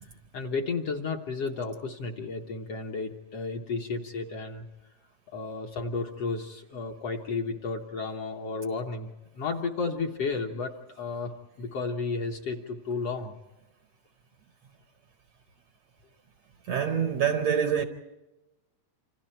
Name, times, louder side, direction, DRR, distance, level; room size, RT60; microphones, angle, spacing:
voice 1, 0.3-4.7 5.3-11.3 11.6-13.3, left 4 dB, 60° left, 1.7 m, -33 dB
voice 2, 16.7-17.8, right 8 dB, 70° right, 1.6 m, -25 dB
29.0 x 26.5 x 4.5 m
omnidirectional pair, 3.9 m